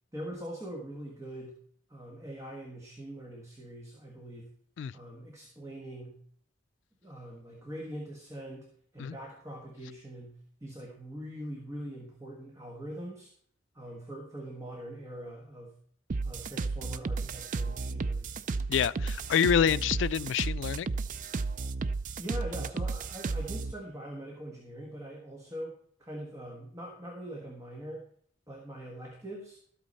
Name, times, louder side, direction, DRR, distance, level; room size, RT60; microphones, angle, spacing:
voice 1, 0.1-1.6 1.9-4.5 4.9-6.2 7.0-8.7 8.9-13.3 13.7-15.7 16.2-18.4 22.2-28.1 28.5-29.6, right 1 dB, 20° right, 1.6 m, -43 dB
sound 1, 16.1-23.7, right 3 dB, 45° right, 0.4 m, -33 dB
voice 2, 18.7-20.9, left 8 dB, 85° left, 0.3 m, -27 dB
13.0 x 8.6 x 4.1 m
head